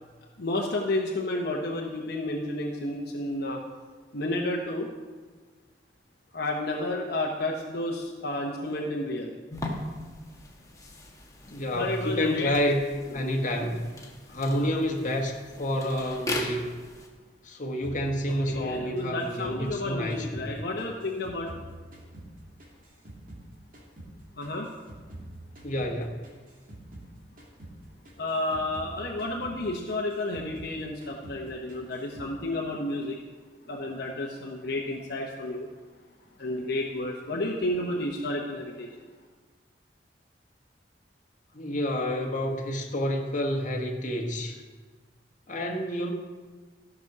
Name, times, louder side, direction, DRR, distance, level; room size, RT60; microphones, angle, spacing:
voice 1, 0.4-3.6 4.1-4.9 6.3-9.3 11.7-12.5 14.5-14.7 18.5-21.5 24.4-24.7 28.2-33.2 33.7-35.7 36.4-38.9, left 1 dB, 60° left, -1 dB, 1.0 m, -31 dB
sound 1, 9.5-17.1, left 1 dB, 20° left, 1.5 m, -39 dB
voice 2, 11.5-12.8 13.1-13.8 14.3-16.7 17.4-20.5 25.6-26.1 41.5-44.6 45.5-46.1, equal, 45° left, 1 dB, 1.4 m, -29 dB
sound 2, 17.8-20.5 20.8-23.5 23.7-27.1 27.4-27.8 28.0-30.8 31.0-31.4 31.7-32.3, right 1 dB, 50° right, 2.4 m, -46 dB
13.5 x 6.2 x 6.0 m, 1.4 s
head